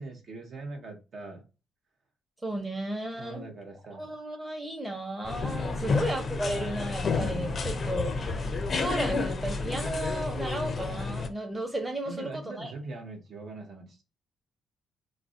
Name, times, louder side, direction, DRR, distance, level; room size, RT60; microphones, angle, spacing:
voice 1, 0.0-1.4 3.1-4.1 12.0-14.0, right 3 dB, 55° right, 0.6 m, -42 dB
voice 2, 2.4-3.4 3.9-12.7, right 1 dB, 10° right, 0.8 m, -34 dB
peter pans resteraunt, 5.2-11.3, left 4 dB, 40° left, 0.4 m, -30 dB
2.4 x 2.0 x 3.6 m
cardioid pair, 120°, 0 cm